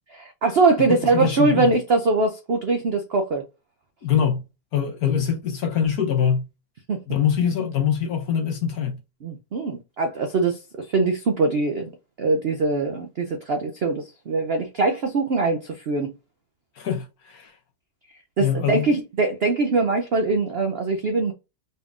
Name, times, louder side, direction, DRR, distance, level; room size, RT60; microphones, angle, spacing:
voice 1, 0.1-3.5 6.9-7.0 9.2-11.9 12.2-16.1 18.4-21.3, right 3 dB, 80° right, 0.5 m, -22 dB
voice 2, 0.8-1.7 4.0-4.4 4.7-6.5 7.1-9.0 16.8-17.5 18.4-18.9, left 8 dB, 65° left, 1.1 m, -23 dB
4.1 x 3.5 x 2.5 m
omnidirectional pair, 1.9 m